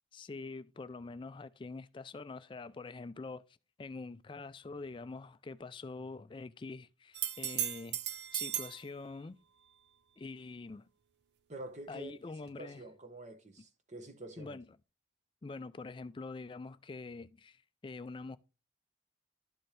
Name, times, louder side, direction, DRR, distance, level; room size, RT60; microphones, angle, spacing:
voice 1, 0.1-3.4 3.8-8.0 8.3-9.4 10.2-10.9 11.9-12.8 14.4-14.7 15.4-18.4, left 3 dB, 25° left, 0.3 m, -45 dB
sound 1, 7.1-8.8 12.5-12.6, right 11 dB, 55° right, 0.5 m, -36 dB
voice 2, 11.5-12.1 12.6-14.6, right 1 dB, 35° right, 1.0 m, -47 dB
12.0 x 4.4 x 3.2 m
head